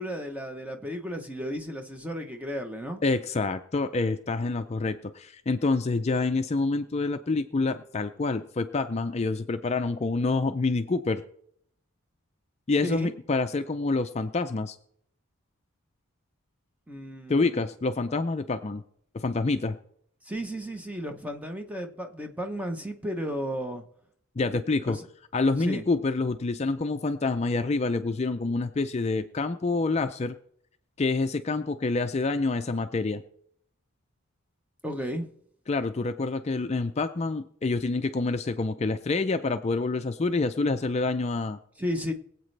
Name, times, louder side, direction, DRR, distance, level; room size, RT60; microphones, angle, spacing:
voice 1, 0.0-3.0 12.8-13.1 16.9-17.6 20.2-23.8 24.4-24.6 24.8-25.1 25.6-25.8 34.8-35.3 41.8-42.1, equal, 5° right, 5 dB, 0.9 m, -34 dB
voice 2, 3.0-11.2 12.7-14.8 17.3-18.8 19.1-19.8 24.4-25.0 25.3-30.4 31.0-33.2 35.7-41.6, left 3 dB, 30° left, 8 dB, 0.4 m, -27 dB
22.5 x 8.1 x 3.3 m, 0.68 s
head